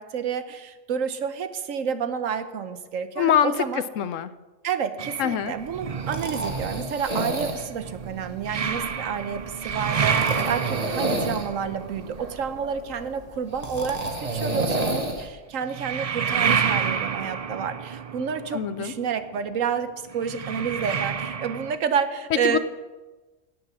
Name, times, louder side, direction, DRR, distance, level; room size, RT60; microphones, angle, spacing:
voice 1, 0.0-3.8 4.6-22.6, right 7 dB, 85° right, 10 dB, 1.2 m, -29 dB
voice 2, 3.2-3.5 4.0-4.3 5.2-5.5 18.5-18.9 22.4-22.6, left 9 dB, 75° left, 14 dB, 1.0 m, -23 dB
sound 1, 5.0-13.5 15.6-21.8, right 7 dB, 65° right, 0.3 m, -30 dB
sound 2, 5.6-15.3, right 2 dB, 30° right, 1.3 m, -31 dB
17.0 x 6.8 x 6.1 m, 1.2 s
omnidirectional pair, 1.3 m